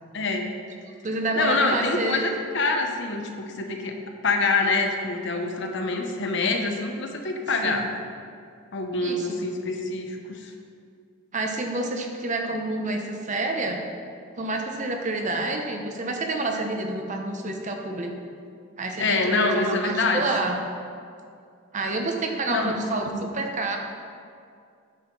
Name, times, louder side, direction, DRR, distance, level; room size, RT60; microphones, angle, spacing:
voice 1, 0.1-0.5 1.4-4.0 4.2-7.9 8.7-10.5 19.0-20.3 22.5-22.8 23.1-23.2, left 3 dB, 60° left, 4 dB, 0.9 m, -25 dB
voice 2, 1.0-2.3 7.6-7.8 9.0-9.3 11.3-13.8 14.4-18.1 18.8-20.6 21.7-23.8, right 2 dB, 35° right, 3 dB, 0.9 m, -28 dB
9.2 x 6.5 x 5.4 m, 2.3 s
head